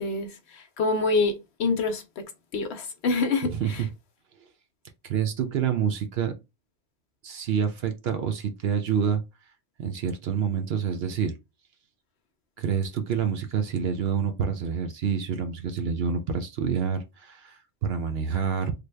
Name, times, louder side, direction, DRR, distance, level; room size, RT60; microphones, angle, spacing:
voice 1, 0.0-2.3 2.5-3.8, left 3 dB, 70° left, 0.9 m, -27 dB
voice 2, 3.5-3.9 5.0-6.3 7.2-9.2 9.8-11.4 12.6-18.8, right 7 dB, 65° right, 0.7 m, -27 dB
3.3 x 2.2 x 3.2 m
omnidirectional pair, 1.2 m